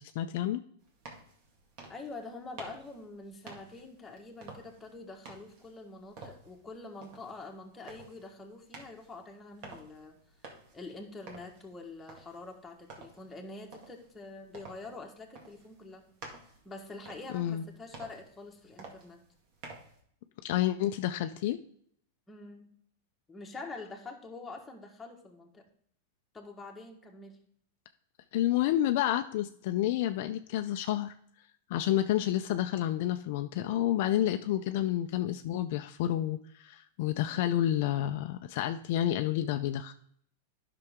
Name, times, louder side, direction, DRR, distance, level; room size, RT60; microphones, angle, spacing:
voice 1, 0.2-0.6 17.3-17.6 20.4-21.6 28.3-31.2 31.7-39.9, left 12 dB, 60° left, 8 dB, 0.5 m, -29 dB
sound 1, 0.8-20.0, right 3 dB, 50° right, 2.0 m, -52 dB
voice 2, 1.9-10.1 10.7-16.0 16.6-19.2 22.3-22.7 23.3-25.7 26.3-27.4, left 3 dB, 10° left, 0 dB, 1.4 m, -46 dB
10.5 x 6.0 x 3.6 m, 0.64 s
supercardioid pair, 140°, 0 cm